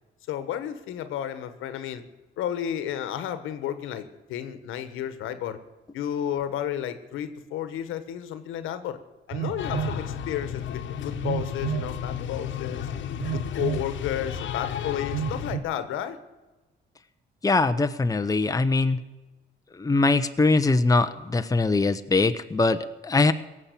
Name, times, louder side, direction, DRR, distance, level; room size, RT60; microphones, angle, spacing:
voice 1, 0.3-2.0 2.4-5.6 5.9-9.0 9.3-12.9 13.3-16.2, left 10 dB, 90° left, 11 dB, 1.3 m, -32 dB
Telephone, 9.3-10.0 11.2-11.9 13.2-13.9 15.1-15.6, right 9 dB, 80° right, 1.6 m, -30 dB
sound 1, 9.6-15.5, left 8 dB, 70° left, 1.2 m, -33 dB
voice 2, 17.4-19.0 19.7-23.3, left 3 dB, 15° left, 9 dB, 0.9 m, -22 dB
17.5 x 7.4 x 8.4 m, 1.1 s
cardioid pair, 90°, 20 cm